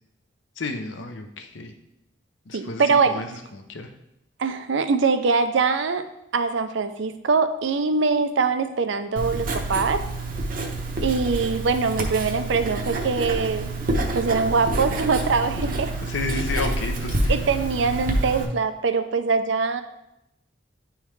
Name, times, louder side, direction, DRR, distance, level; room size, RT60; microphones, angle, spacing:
voice 1, 0.6-1.7 2.5-3.9 16.1-17.3, left 3 dB, 80° left, 6 dB, 0.7 m, -31 dB
voice 2, 2.5-3.2 4.4-6.1 6.3-10.0 11.0-13.7 14.1-15.9 17.3-19.8, right 4 dB, 70° right, 10 dB, 0.5 m, -23 dB
Writing, 9.2-18.5, right 2 dB, 50° right, 0.8 m, -27 dB
10.0 x 3.6 x 3.2 m, 0.86 s
head